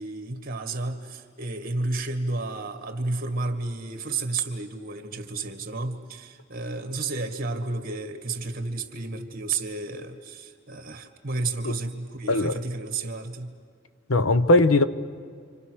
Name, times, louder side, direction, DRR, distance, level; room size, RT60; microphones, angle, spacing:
voice 1, 0.0-13.6, right 3 dB, 45° right, 7 dB, 2.0 m, -31 dB
voice 2, 14.1-14.8, left 2 dB, 85° left, 12 dB, 1.0 m, -19 dB
29.0 x 26.0 x 6.4 m, 2.1 s
head